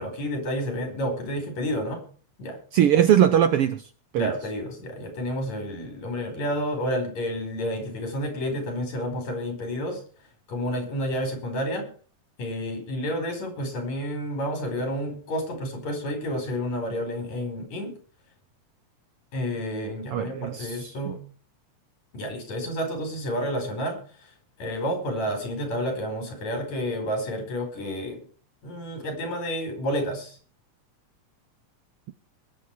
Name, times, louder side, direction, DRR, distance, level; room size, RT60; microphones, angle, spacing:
voice 1, 0.0-2.0 2.4-2.6 4.2-10.0 10.5-11.9 12.4-17.9 19.3-21.2 22.1-24.3 24.6-28.2 28.6-30.4, equal, 70° left, 6 dB, 5.9 m, -30 dB
voice 2, 2.7-4.3 20.1-21.1, right 10 dB, 70° right, 12 dB, 1.4 m, -21 dB
21.0 x 8.6 x 4.7 m, 0.42 s
omnidirectional pair, 3.3 m